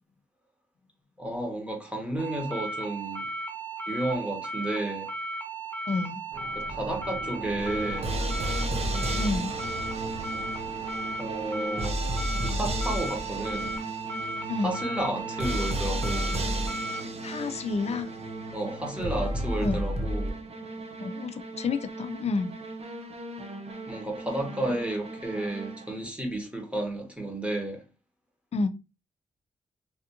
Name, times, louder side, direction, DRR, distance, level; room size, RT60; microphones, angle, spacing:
voice 1, 1.2-3.3 3.9-5.1 6.5-8.2 11.2-12.0 12.4-13.7 14.6-16.3 18.5-20.4 23.9-27.8, right 1 dB, 10° right, 1.2 m, -32 dB
sound 1, 2.2-17.0, right 2 dB, 15° left, 1.0 m, -36 dB
voice 2, 5.9-6.2 9.2-9.6 14.5-14.7 17.2-18.1 19.6-19.9 21.0-22.5 28.5-28.7, left 4 dB, 50° left, 0.5 m, -29 dB
sound 2, 6.3-13.8, right 3 dB, 85° right, 0.7 m, -41 dB
sound 3, 7.6-26.1, right 1 dB, 50° right, 0.7 m, -33 dB
3.4 x 2.5 x 2.8 m
cardioid pair, 70°, 14 cm